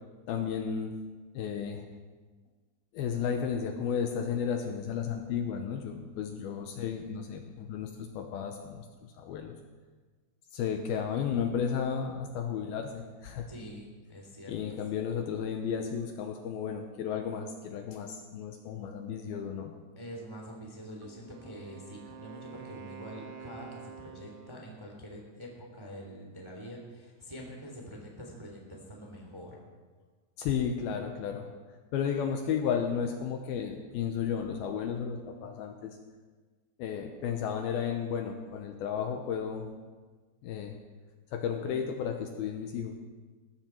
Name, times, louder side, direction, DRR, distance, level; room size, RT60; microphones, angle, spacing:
voice 1, 0.3-0.9 1.3-1.9 2.9-9.6 10.5-13.5 14.5-19.7 30.4-31.5 31.9-35.9 36.8-39.7 40.4-40.8 41.3-43.0, left 7 dB, 75° left, 4 dB, 2.6 m, -33 dB
voice 2, 13.5-14.8 20.0-29.6, equal, 10° right, 0 dB, 1.8 m, -45 dB
Wind instrument woodwind instrument, 21.0-24.9, right 7 dB, 80° right, 3.0 m, -48 dB
19.5 x 14.5 x 4.5 m, 1.4 s
omnidirectional pair, 4.9 m